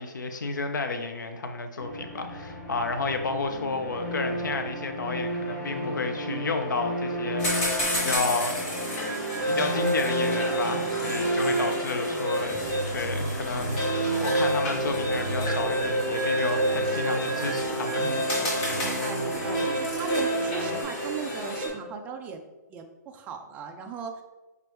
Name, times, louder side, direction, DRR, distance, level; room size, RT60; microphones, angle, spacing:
voice 1, 0.0-8.7 9.5-12.6 12.9-18.1, left 3 dB, 85° left, 6 dB, 0.5 m, -31 dB
sound 1, 1.8-20.8, right 1 dB, 15° left, 1.0 m, -33 dB
sound 2, 7.4-21.7, equal, 30° left, 1.3 m, -29 dB
voice 2, 11.8-12.8 18.8-22.4 22.7-24.2, right 5 dB, 15° right, 5 dB, 0.3 m, -39 dB
5.0 x 3.0 x 3.2 m, 1.1 s
hypercardioid pair, 145°, 10 cm